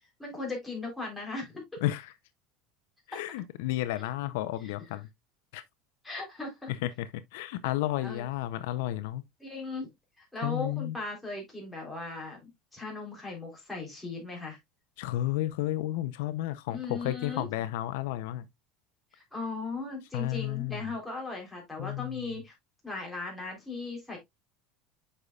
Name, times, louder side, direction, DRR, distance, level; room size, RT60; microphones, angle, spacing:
voice 1, 0.2-1.6 3.1-3.2 6.0-6.7 8.0-8.3 9.4-9.9 10.2-14.6 16.7-17.5 19.1-22.5 22.8-24.2, left 3 dB, 5° left, 3.5 m, -38 dB
voice 2, 1.8-2.1 3.1-5.1 5.5-5.6 6.7-9.2 10.4-11.0 15.0-18.5 20.1-20.9 21.8-22.2, left 14 dB, 80° left, 0.6 m, -32 dB
8.2 x 5.6 x 2.3 m
supercardioid pair, 140°, 0 cm